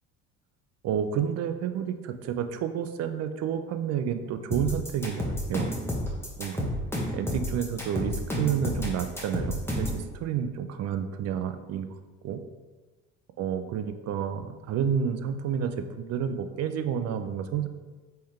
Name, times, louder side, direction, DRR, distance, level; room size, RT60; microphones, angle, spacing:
voice 1, 0.8-5.7 6.4-6.7 7.1-11.9 12.2-12.4 13.4-17.7, right 8 dB, 50° right, 9 dB, 0.4 m, -30 dB
sound 1, 4.5-10.0, left 1 dB, 5° left, 1.1 m, -30 dB
3.7 x 3.3 x 4.3 m, 1.3 s
supercardioid pair, 95°, 34 cm